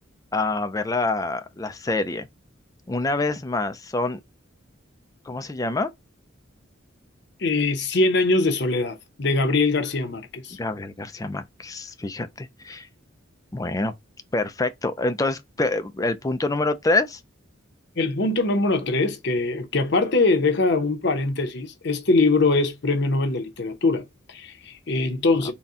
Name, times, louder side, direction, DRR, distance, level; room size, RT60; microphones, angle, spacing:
voice 1, 0.3-2.3 2.9-4.2 5.3-5.9 10.6-12.9 13.5-13.9 14.3-17.2, left 2 dB, 15° left, 0.4 m, -26 dB
voice 2, 7.4-10.6 18.0-25.5, left 3 dB, 60° left, 0.9 m, -22 dB
4.1 x 2.3 x 3.6 m
head